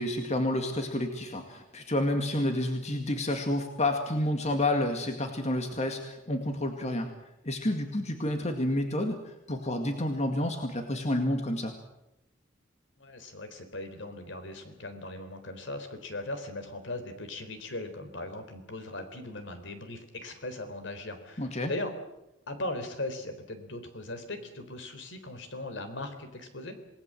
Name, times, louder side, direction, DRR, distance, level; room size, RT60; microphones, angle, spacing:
voice 1, 0.0-7.1 7.4-11.7 21.4-21.7, left 1 dB, 35° left, 5 dB, 2.1 m, -29 dB
voice 2, 13.0-21.9 22.5-26.8, left 2 dB, 65° left, 8 dB, 4.0 m, -39 dB
28.0 x 19.0 x 7.7 m, 0.89 s
head